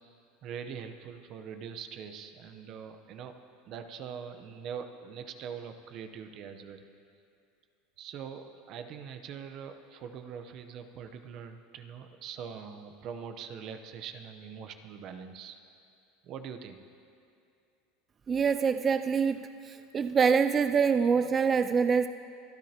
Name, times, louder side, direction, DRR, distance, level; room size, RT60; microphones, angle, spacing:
voice 1, 0.4-3.3 3.7-6.8 8.0-15.6 16.2-16.8, right 7 dB, 50° right, 7 dB, 0.9 m, -43 dB
voice 2, 18.3-19.4 19.7-22.1, right 6 dB, 25° right, 10 dB, 0.3 m, -25 dB
24.5 x 10.5 x 2.9 m, 2.5 s
supercardioid pair, 120°, 0 cm